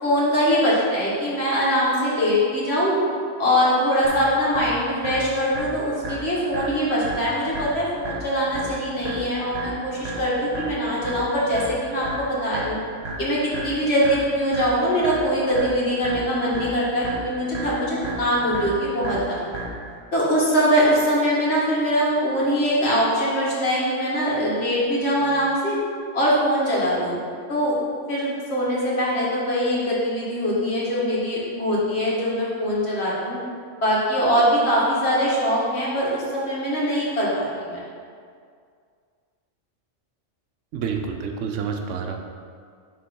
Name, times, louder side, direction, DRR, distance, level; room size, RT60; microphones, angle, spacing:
voice 1, 0.0-3.0 3.4-12.8 13.2-19.4 20.1-25.8 26.1-27.2 27.5-27.7 28.1-33.4 33.8-37.8, equal, 55° left, -7 dB, 1.9 m, -22 dB
sound 1, 4.0-20.0, right 2 dB, 60° right, 1.4 m, -35 dB
voice 2, 40.7-42.2, right 6 dB, 75° right, 3 dB, 1.0 m, -28 dB
6.8 x 3.7 x 5.3 m, 2.2 s
omnidirectional pair, 1.3 m